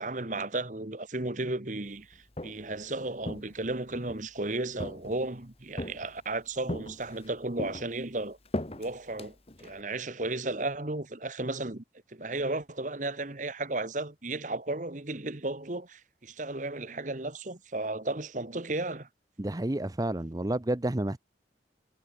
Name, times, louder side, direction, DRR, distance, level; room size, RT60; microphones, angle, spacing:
voice 1, 0.0-8.4 8.8-11.8 12.1-19.1, right 2 dB, 45° right, 1.5 m, -34 dB
Walk footsteps, 2.1-2.8 3.2-4.2 4.8-5.4 5.8-6.3 6.7-7.3 7.6-9.8, left 1 dB, 35° left, 1.8 m, -38 dB
voice 2, 19.4-21.2, right 1 dB, 20° right, 0.6 m, -30 dB
head